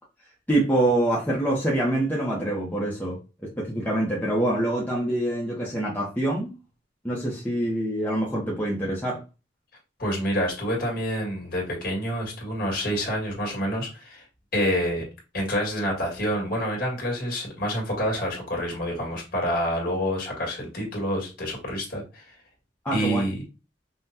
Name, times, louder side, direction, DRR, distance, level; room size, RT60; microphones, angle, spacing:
voice 1, 0.5-6.6 7.0-9.2 22.8-23.3, right 1 dB, 10° left, 0.7 m, -25 dB
voice 2, 10.0-14.2 14.5-15.0 15.3-22.2 22.9-23.4, equal, 55° left, 1.9 m, -27 dB
5.5 x 2.2 x 2.8 m
head